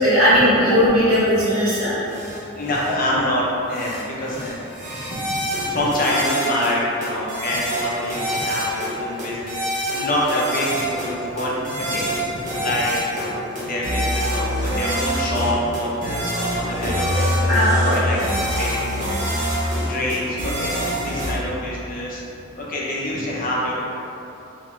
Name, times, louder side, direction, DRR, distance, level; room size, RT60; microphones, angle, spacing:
voice 1, 0.0-2.0 17.1-17.9, equal, 80° right, -10 dB, 1.4 m, -18 dB
sound 1, 2.1-2.4 2.7-2.9 3.7-4.0 4.3-6.7 7.0-8.9 9.2-11.1 11.4-13.3 13.6-21.3, equal, 35° right, 0.8 m, -25 dB
voice 2, 2.5-22.2 22.6-23.8, left 1 dB, 40° left, -5 dB, 0.6 m, -26 dB
3.3 x 2.9 x 3.7 m, 2.9 s
head